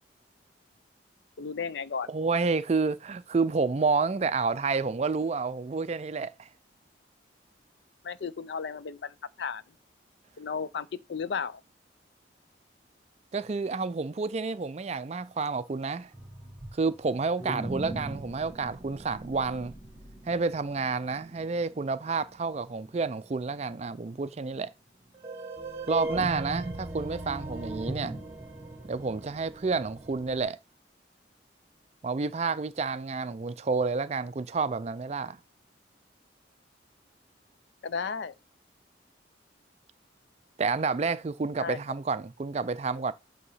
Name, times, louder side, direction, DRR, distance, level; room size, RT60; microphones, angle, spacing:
voice 1, 1.4-2.1 8.0-9.6 10.4-11.6 37.8-38.3 41.6-41.8, left 5 dB, 65° left, 0.4 m, -34 dB
voice 2, 2.1-6.5 13.3-16.1 16.7-19.8 20.3-24.7 25.9-28.1 28.9-30.6 32.0-35.4 40.6-43.1, right 4 dB, 35° right, 0.4 m, -29 dB
sound 1, 16.1-23.6 23.9-24.0 24.6-24.7 25.1-30.4, right 2 dB, 15° right, 1.6 m, -39 dB
8.5 x 2.9 x 5.5 m
head